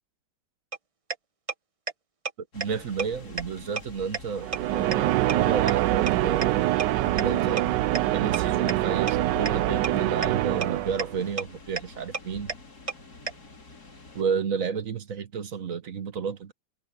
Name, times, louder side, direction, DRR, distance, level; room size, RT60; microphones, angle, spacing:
sound 1, 0.7-0.8 1.1-1.2 1.5-1.6 1.9-2.0 2.3-2.4 2.6-2.7 3.0-3.1 3.4-3.5 3.8-3.9 4.1-4.2 4.5-4.6 4.9-5.0 5.3-5.4 5.7-5.8 6.1-6.2 6.4-6.5 6.8-6.9 7.2-7.3 7.6-7.7 7.9-8.0 8.3-8.4 8.7-8.8 9.1-9.2 9.5-9.6 9.8-9.9 10.2-10.3 10.6-10.7 11.0-11.1 11.4-11.5 11.8-11.9 12.1-12.2 12.5-12.6 12.9-13.0 13.3-13.4, right 4 dB, 30° right, 0.6 m, -29 dB
voice 1, 2.4-6.6 7.1-7.7 8.1-12.5 14.1-16.5, right 6 dB, 50° right, 1.3 m, -31 dB
sound 2, 2.5-14.2, left 2 dB, 55° left, 4.0 m, -45 dB
sound 3, 4.4-11.3, right 15 dB, 75° right, 1.2 m, -25 dB
omnidirectional pair, 2.0 m